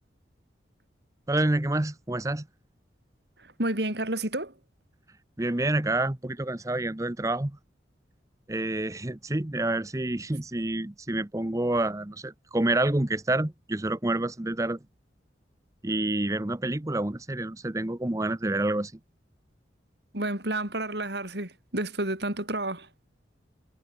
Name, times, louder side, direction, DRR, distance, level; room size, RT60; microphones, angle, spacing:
voice 1, 1.3-2.5 5.4-7.6 8.5-14.8 15.8-18.9, right 2 dB, 15° right, 0.7 m, -28 dB
voice 2, 3.4-4.5 20.1-22.9, right 1 dB, 65° right, 6.0 m, -30 dB
head